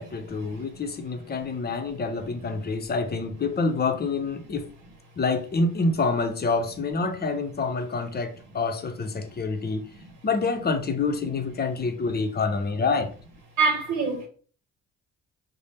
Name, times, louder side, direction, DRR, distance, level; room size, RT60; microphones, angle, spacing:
voice 1, 0.0-4.7 5.2-9.9 10.2-13.1, left 4 dB, 30° left, 0.6 m, -27 dB
voice 2, 13.6-14.3, right 4 dB, 85° right, 0.8 m, -24 dB
3.2 x 2.0 x 4.2 m
cardioid pair, 90°, 30 cm